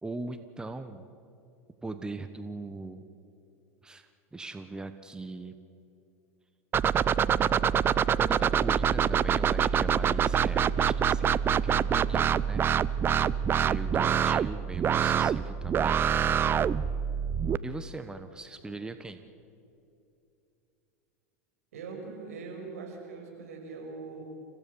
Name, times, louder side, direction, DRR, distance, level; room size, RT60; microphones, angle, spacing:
voice 1, 0.0-1.0 1.8-3.0 3.8-5.6 7.2-7.9 8.2-12.7 13.6-16.0 17.6-19.2, right 3 dB, 10° right, 9 dB, 1.2 m, -40 dB
sound 1, 6.7-17.6, right 8 dB, 30° right, 0.6 m, -25 dB
voice 2, 21.7-24.2, right 4 dB, 75° right, 1 dB, 6.0 m, -41 dB
30.0 x 16.0 x 7.1 m, 2.7 s
hypercardioid pair, 90°, 8 cm